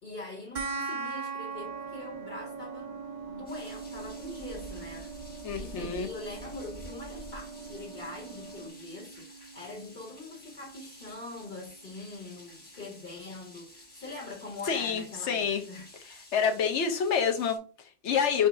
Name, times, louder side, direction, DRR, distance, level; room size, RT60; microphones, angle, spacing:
voice 1, 0.0-3.0 3.3-15.9, left 2 dB, 50° left, 1.8 m, -43 dB
sound 1, 0.6-11.5, right 4 dB, 75° right, 0.3 m, -41 dB
sound 2, 1.5-8.7, right 3 dB, 25° right, 0.9 m, -46 dB
sound 3, 3.5-17.6, left 2 dB, 10° left, 1.2 m, -53 dB
voice 2, 5.4-6.1 14.7-15.6 16.3-18.5, left 7 dB, 70° left, 1.1 m, -28 dB
6.1 x 2.6 x 2.6 m
omnidirectional pair, 1.2 m